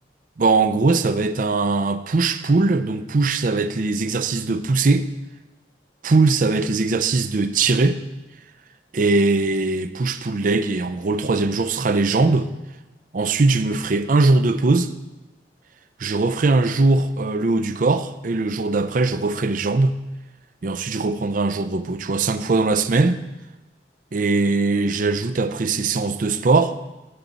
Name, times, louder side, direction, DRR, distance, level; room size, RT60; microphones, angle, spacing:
voice 1, 0.4-5.1 6.0-8.0 8.9-12.5 13.1-14.9 16.0-20.0 20.6-23.2 24.1-26.8, right 3 dB, 45° right, 0.5 m, -20 dB
11.0 x 7.3 x 4.0 m
head